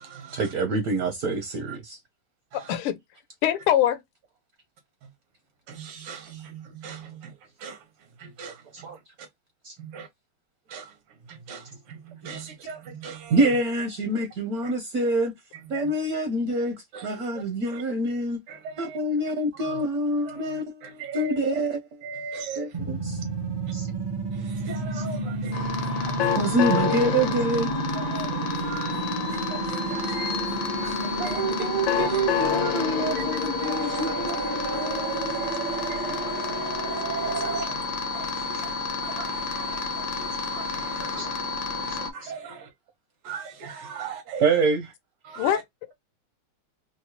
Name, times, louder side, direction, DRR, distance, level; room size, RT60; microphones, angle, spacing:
voice 1, 0.3-2.0 8.8-9.0 9.6-9.7 13.3-15.3 15.7-16.7 17.0-18.4 18.8-21.9 22.6-23.2 23.7-23.9 24.9-25.0 26.4-27.7 31.2-34.4 38.5-38.6 41.0-41.3 41.9-42.4 44.0-44.1 44.4-44.9, right 2 dB, 70° right, 0.9 m, -26 dB
voice 2, 2.5-3.0 3.4-4.0 45.4-45.6, left 11 dB, 85° left, 1.6 m, -23 dB
voice 3, 5.7-7.2 7.6-7.8 8.2-8.5 9.8-10.1 10.7-10.8 11.5-11.6 11.9-13.4 15.7-15.9 16.9-17.2 17.7-17.8 18.5-19.0 19.6-19.8 20.3-21.4 22.0-22.7 24.7-25.7 26.0-26.1 28.0-29.1 29.5-30.4 30.8-31.4 33.6-36.6 37.2-37.8 38.1-38.7 39.0-39.8 40.1-41.2 42.1-42.5 43.3-44.4 45.3-45.5, right 5 dB, 90° right, 2.0 m, -39 dB
sound 1, 22.7-37.6, right 2 dB, 50° right, 0.5 m, -31 dB
sound 2, 25.5-42.1, left 5 dB, 65° left, 1.3 m, -30 dB
4.5 x 2.0 x 2.8 m
omnidirectional pair, 2.4 m